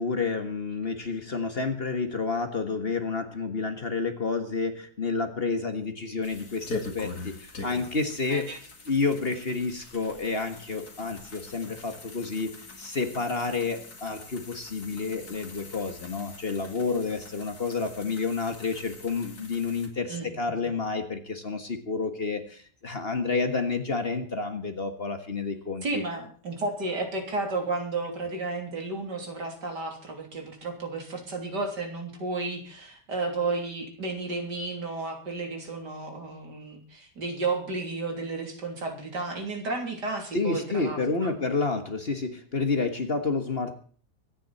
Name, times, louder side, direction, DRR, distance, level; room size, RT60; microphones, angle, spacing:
voice 1, 0.0-8.6 8.9-12.5 12.8-26.0 40.3-43.7, left 4 dB, 35° left, 7 dB, 1.7 m, -30 dB
sound 1, 6.2-19.9, left 3 dB, 60° left, 3.1 m, -43 dB
voice 2, 20.1-20.6 25.8-41.3, right 3 dB, 75° right, 3 dB, 3.8 m, -33 dB
24.0 x 10.0 x 4.3 m, 0.43 s
omnidirectional pair, 1.8 m